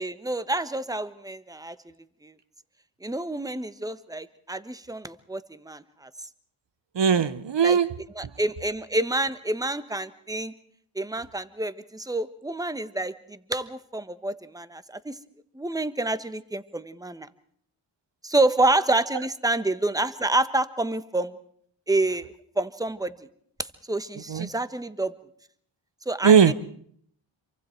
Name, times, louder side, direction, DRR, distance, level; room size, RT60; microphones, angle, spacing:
voice 1, 0.0-1.8 2.2-2.3 3.0-6.1 7.6-7.8 8.1-10.5 10.9-15.1 15.5-17.3 18.2-21.4 21.9-23.3 23.9-25.1 26.1-26.5, right 2 dB, 5° right, 13 dB, 1.2 m, -28 dB
voice 2, 7.0-7.9 24.3-24.5 26.2-26.5, right 7 dB, 60° right, 14 dB, 0.9 m, -18 dB
27.0 x 23.5 x 4.5 m, 0.63 s
cardioid pair, 60°, 49 cm